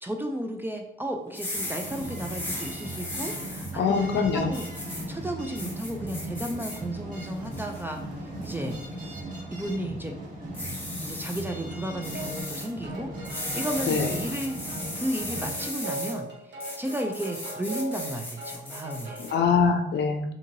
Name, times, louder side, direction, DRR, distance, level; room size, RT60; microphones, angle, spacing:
voice 1, 0.0-8.8 9.5-10.1 11.0-14.6 15.0-19.2, right 1 dB, 10° right, 3 dB, 0.3 m, -34 dB
sound 1, 1.3-3.7 4.5-5.0 5.5-6.8 7.2-7.8 8.4-8.7 10.5-11.4 12.0-12.7 13.2-16.1 16.6-19.3, left 1 dB, 10° left, 0.7 m, -36 dB
sound 2, 1.5-15.7, right 1 dB, 45° right, 1.2 m, -38 dB
voice 2, 3.8-4.5 13.9-14.1 19.2-20.3, left 5 dB, 60° left, 6 dB, 0.4 m, -23 dB
sound 3, 12.1-19.5, right 1 dB, 65° right, 0.9 m, -40 dB
2.8 x 2.7 x 2.6 m, 0.79 s
cardioid pair, 90°, 20 cm